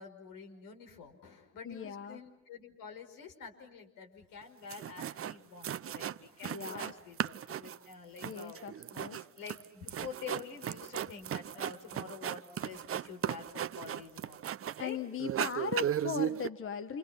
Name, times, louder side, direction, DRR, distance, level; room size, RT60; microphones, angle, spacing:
voice 1, 0.0-8.6 8.9-14.4 14.8-15.0, left 6 dB, 65° left, 4 dB, 5.7 m, -48 dB
voice 2, 1.6-2.2 6.4-6.9 8.2-9.3 14.8-17.0, left 6 dB, 35° left, 9 dB, 1.5 m, -39 dB
sound 1, 4.4-4.5 4.7-5.4 5.6-6.9 7.2-14.9 15.2-16.5, right 10 dB, 35° right, 0.9 m, -36 dB
29.0 x 28.0 x 6.0 m, 0.85 s
hypercardioid pair, 60°, 36 cm